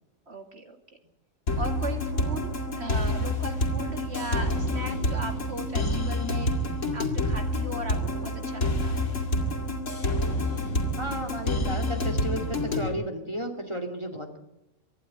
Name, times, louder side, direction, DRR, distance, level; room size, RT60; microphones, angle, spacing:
voice 1, 0.3-0.8 1.6-6.5 6.9-9.0, right 2 dB, 55° right, 5 dB, 2.9 m, -37 dB
sound 1, 1.5-12.9, left 1 dB, 70° left, 2.7 m, -28 dB
voice 2, 11.0-14.4, equal, 20° right, 5 dB, 2.3 m, -33 dB
24.5 x 11.5 x 9.6 m, 0.88 s
omnidirectional pair, 1.3 m